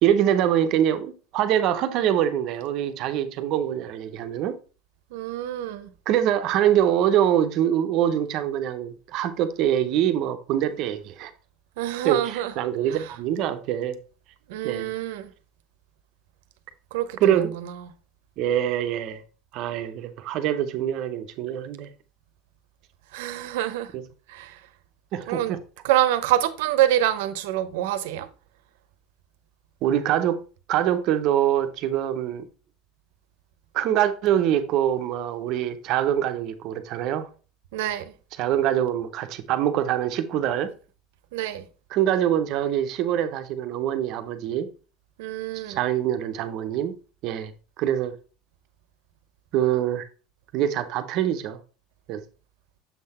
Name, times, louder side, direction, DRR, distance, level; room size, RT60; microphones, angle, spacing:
voice 1, 0.0-4.6 6.1-11.3 12.0-14.0 14.6-14.9 17.2-17.5 18.4-19.2 19.5-21.9 23.9-24.0 25.1-25.6 29.8-30.4 30.7-32.4 33.7-37.3 38.4-40.7 41.9-44.7 45.5-47.0 47.2-47.5 47.8-48.2 49.5-50.1 50.5-51.6 52.1-52.2, right 10 dB, 45° right, 0.6 m, -24 dB
voice 2, 5.1-5.9 11.8-12.5 12.9-13.0 14.5-15.3 16.9-17.8 23.1-23.9 24.3-24.6 25.3-25.6 25.8-28.3 37.7-38.0 41.3-41.6 45.2-45.8, right 12 dB, 80° right, 0.7 m, -26 dB
7.0 x 3.9 x 4.1 m
cardioid pair, 165°, 0 cm